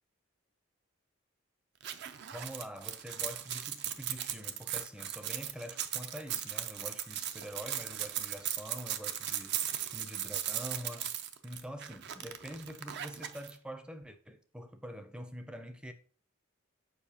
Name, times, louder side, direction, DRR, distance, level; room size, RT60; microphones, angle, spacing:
sound 1, 1.8-13.5, right 11 dB, 55° right, 0.4 m, -38 dB
voice 1, 2.3-11.1 11.4-15.9, equal, 5° right, 0.5 m, -45 dB
6.9 x 4.8 x 2.8 m
head